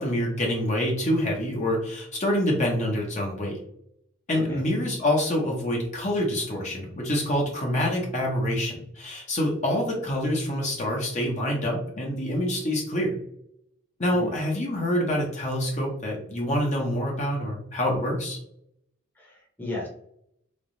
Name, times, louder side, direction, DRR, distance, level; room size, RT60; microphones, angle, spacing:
voice 1, 0.0-3.6 4.3-13.2 14.0-18.4, left 1 dB, 35° left, -1 dB, 0.8 m, -26 dB
voice 2, 19.2-19.9, left 2 dB, 10° left, -3 dB, 0.9 m, -34 dB
3.3 x 2.3 x 3.9 m, 0.72 s
head